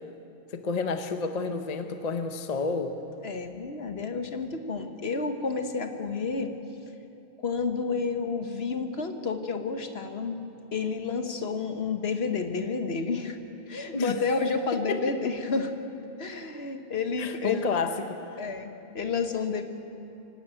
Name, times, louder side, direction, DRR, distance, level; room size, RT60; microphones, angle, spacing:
voice 1, 0.5-3.0 13.9-14.3 14.9-15.0 17.2-18.2, left 4 dB, 40° left, 7 dB, 0.9 m, -30 dB
voice 2, 3.2-6.5 7.4-10.4 10.7-13.4 13.7-15.7 16.2-17.8 18.4-19.6, left 4 dB, 65° left, 7 dB, 1.5 m, -30 dB
24.5 x 12.5 x 9.0 m, 2.8 s
omnidirectional pair, 1.2 m